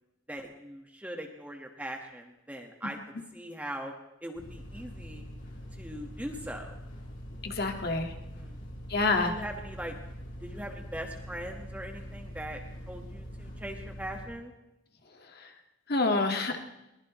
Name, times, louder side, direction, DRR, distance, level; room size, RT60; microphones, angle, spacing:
voice 1, 0.3-3.0 3.3-3.9 4.2-5.3 5.7-6.8 8.2-8.6 9.1-9.9 10.4-12.6 12.9-14.5, right 1 dB, 10° right, 2 dB, 1.4 m, -40 dB
sound 1, 4.3-14.2, equal, 70° left, 7.2 m, -43 dB
voice 2, 7.4-8.1 8.9-9.3 15.9-16.6, left 3 dB, 55° left, 4 dB, 1.8 m, -27 dB
22.5 x 20.0 x 3.1 m, 0.94 s
head